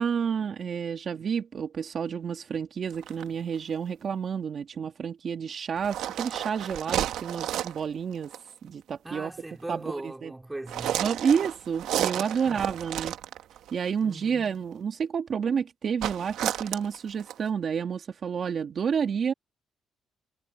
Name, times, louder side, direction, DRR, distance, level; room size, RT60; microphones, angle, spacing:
voice 1, 0.0-8.3 8.6-9.3 9.7-10.3 11.0-13.2 13.7-19.3, right 7 dB, 50° right, 2.2 m, -30 dB
sound 1, 2.9-3.2 5.8-7.9 8.2-8.5 10.7-13.7 16.0-17.4, right 12 dB, 85° right, 1.4 m, -32 dB
voice 2, 9.0-11.0 12.1-12.7 14.0-14.6, right 2 dB, 15° right, 3.6 m, -40 dB
cardioid pair, 90°, 0 cm